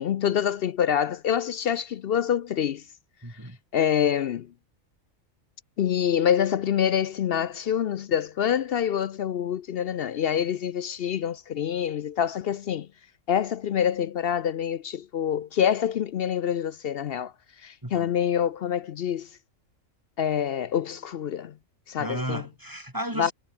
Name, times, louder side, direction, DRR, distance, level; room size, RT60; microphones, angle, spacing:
voice 1, 0.0-2.8 3.7-4.5 5.8-12.9 13.3-17.3 17.6-19.3 20.2-21.5 21.9-22.4 23.2-23.3, left 9 dB, 60° left, 0.7 m, -26 dB
voice 2, 3.2-3.6 17.8-18.1 22.0-23.3, equal, 15° right, 2.8 m, -33 dB
omnidirectional pair, 1.4 m